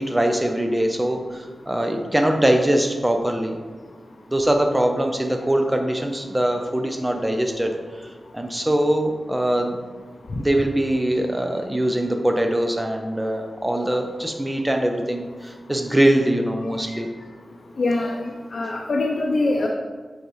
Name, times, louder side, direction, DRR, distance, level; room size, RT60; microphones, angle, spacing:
voice 1, 0.0-3.6 4.3-7.7 8.3-9.8 10.4-17.1, right 1 dB, 15° right, 3 dB, 0.7 m, -22 dB
voice 2, 17.8-18.3 18.5-19.7, left 2 dB, 65° left, 0 dB, 0.6 m, -23 dB
8.0 x 4.0 x 3.2 m, 1.4 s
wide cardioid pair, 75°, 0 cm